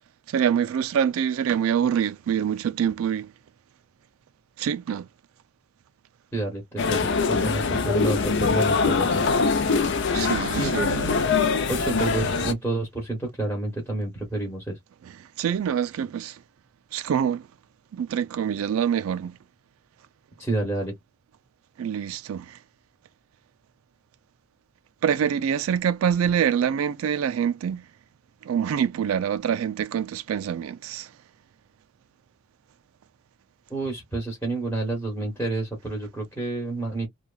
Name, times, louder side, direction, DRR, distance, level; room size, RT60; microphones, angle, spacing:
voice 1, 0.3-3.3 4.6-5.1 10.1-11.0 15.0-16.4 16.9-17.5 17.9-19.4 21.8-22.6 25.0-27.9 28.4-31.1, right 8 dB, 80° right, 0.3 m, -25 dB
voice 2, 6.3-9.3 10.5-11.2 11.7-14.8 20.4-20.9 33.7-37.1, right 2 dB, 10° left, 0.9 m, -29 dB
sound 1, 6.8-12.5, left 4 dB, 60° left, 0.5 m, -23 dB
2.8 x 2.2 x 2.3 m
head